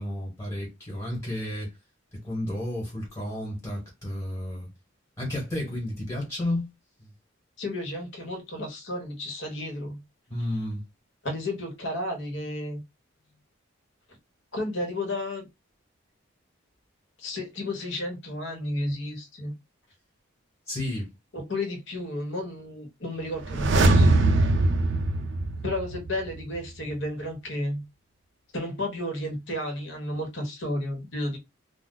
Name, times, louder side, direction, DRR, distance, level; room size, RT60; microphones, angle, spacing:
voice 1, 0.0-1.7 2.1-4.7 5.2-6.7 10.3-10.8 20.7-21.1, left 1 dB, 15° left, 1.4 m, -32 dB
voice 2, 7.6-10.0 11.2-12.8 14.5-15.4 17.2-19.5 21.3-24.2 25.6-27.8 28.5-31.4, left 1 dB, 60° left, 1.3 m, -32 dB
sound 1, 23.4-26.3 26.5-26.6, right 2 dB, 60° right, 0.4 m, -22 dB
2.5 x 2.3 x 3.8 m
head